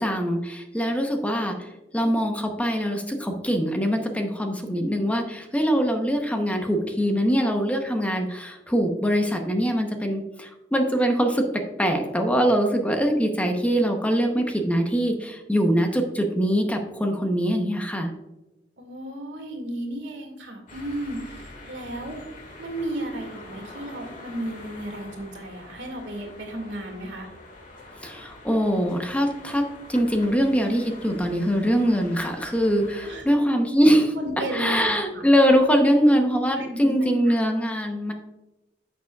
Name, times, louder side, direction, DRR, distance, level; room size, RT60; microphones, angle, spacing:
voice 1, 0.0-1.7 1.9-11.4 11.8-18.1 28.0-29.6 29.9-34.1 34.5-38.1, equal, 10° left, 4 dB, 0.8 m, -23 dB
voice 2, 18.8-22.2 22.6-27.3 33.0-33.3 34.2-35.2 36.6-36.9 37.3-37.4, right 1 dB, 80° right, 2 dB, 2.1 m, -34 dB
sound 1, 20.7-33.2, left 2 dB, 45° left, 1.8 m, -45 dB
9.9 x 7.0 x 2.3 m, 1.0 s
head